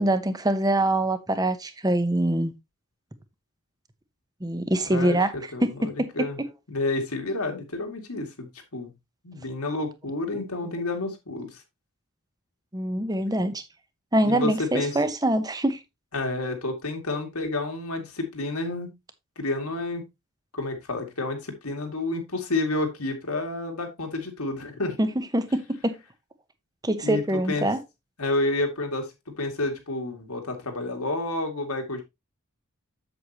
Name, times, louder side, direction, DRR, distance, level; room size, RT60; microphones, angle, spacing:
voice 1, 0.0-2.5 4.4-6.1 6.4-6.5 10.3-10.4 12.7-13.6 14.1-15.8 25.0-25.9 26.8-27.8, right 1 dB, 15° right, 0.9 m, -24 dB
voice 2, 5.5-6.4 6.7-8.9 9.2-11.6 14.2-15.0 16.1-18.9 19.4-20.0 20.5-25.0 27.0-27.7 28.2-29.1 29.4-32.0, left 2 dB, 85° left, 2.5 m, -30 dB
7.9 x 7.9 x 2.9 m
head